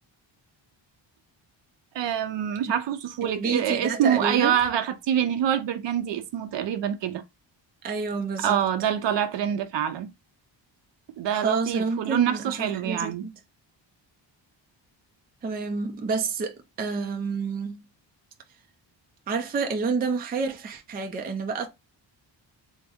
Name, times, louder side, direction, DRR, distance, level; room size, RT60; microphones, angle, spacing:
voice 1, 1.9-7.2 8.4-10.1 11.2-13.3, right 9 dB, 70° right, 0.6 m, -26 dB
voice 2, 3.2-4.6 7.8-8.6 11.3-13.3 15.4-17.8 19.3-21.7, right 4 dB, 25° right, 0.3 m, -29 dB
3.4 x 2.0 x 3.5 m
wide cardioid pair, 170°, 46 cm